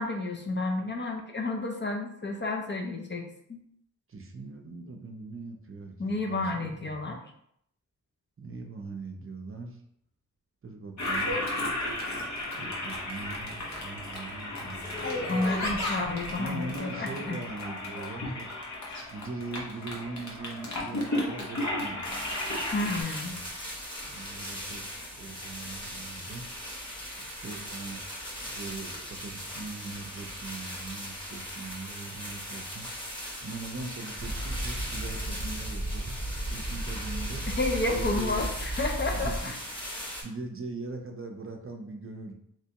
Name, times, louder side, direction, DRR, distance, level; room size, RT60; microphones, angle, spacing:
voice 1, 0.0-3.2 3.5-3.6 6.0-7.2 15.3-17.4 22.7-23.3 37.6-39.5, left 2 dB, 35° left, 2 dB, 0.5 m, -31 dB
voice 2, 4.1-7.0 8.4-9.8 10.6-11.4 12.5-15.0 16.4-18.5 19.1-22.0 23.2-23.4 24.0-24.9 25.2-26.5 27.2-28.0 28.4-32.9 33.4-37.5 37.9-38.3 39.1-39.5 40.2-42.3, right 3 dB, 40° right, 2 dB, 0.5 m, -41 dB
Toilet flush, 11.0-23.0, left 1 dB, 60° left, 0.9 m, -34 dB
sound 1, 22.0-40.2, equal, 15° left, 0.9 m, -39 dB
sound 2, 34.2-39.4, right 1 dB, 5° right, 0.9 m, -34 dB
3.3 x 3.0 x 2.8 m, 0.71 s
wide cardioid pair, 130°, 32 cm